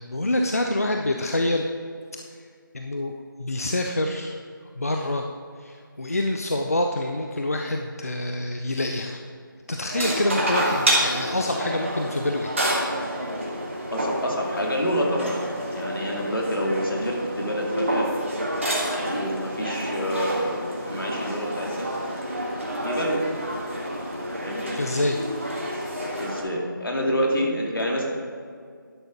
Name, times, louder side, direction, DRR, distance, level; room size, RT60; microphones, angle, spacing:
voice 1, 0.0-1.7 2.7-3.1 3.4-4.4 4.8-5.3 5.6-9.2 9.7-12.5 24.8-25.2, left 1 dB, 45° left, 3 dB, 0.5 m, -26 dB
sound 1, 9.9-26.4, equal, 35° right, 1.5 m, -28 dB
voice 2, 13.9-15.4 15.7-18.1 19.1-21.9 22.8-23.3 24.4-24.8 26.2-28.0, equal, 75° left, -1 dB, 2.4 m, -27 dB
11.0 x 6.1 x 5.1 m, 2.1 s
figure-of-eight pair, 175°, 12 cm